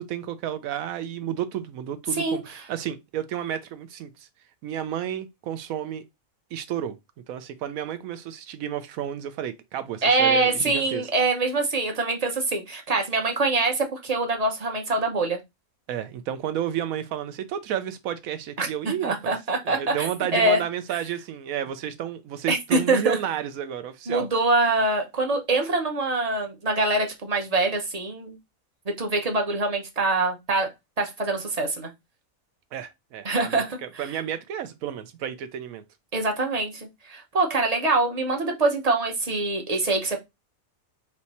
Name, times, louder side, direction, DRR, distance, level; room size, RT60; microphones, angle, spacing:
voice 1, 0.0-4.3 4.6-6.0 6.5-7.0 7.3-11.0 15.9-19.3 19.6-24.3 32.7-35.8, right 10 dB, 85° right, 1.0 m, -31 dB
voice 2, 10.0-15.4 18.6-18.7 19.0-20.6 22.5-23.2 24.1-28.4 29.0-30.7 31.0-31.9 33.2-34.2 36.1-40.2, right 2 dB, 35° right, 0.7 m, -24 dB
3.3 x 3.0 x 4.0 m
omnidirectional pair, 1.4 m